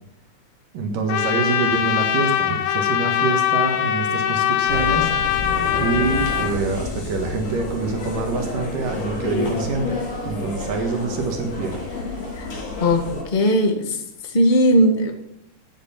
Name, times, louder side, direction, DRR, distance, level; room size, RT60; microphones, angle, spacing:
voice 1, 0.7-5.1 5.8-11.8, right 4 dB, 75° right, 3 dB, 3.2 m, -26 dB
Trumpet, 1.1-6.6, left 10 dB, 85° left, 2.7 m, -22 dB
sound 1, 4.7-13.2, left 2 dB, 50° left, 4.2 m, -29 dB
voice 2, 12.8-14.0 14.3-15.1, equal, 20° left, 2 dB, 1.2 m, -18 dB
12.5 x 9.5 x 5.8 m, 0.80 s
omnidirectional pair, 3.9 m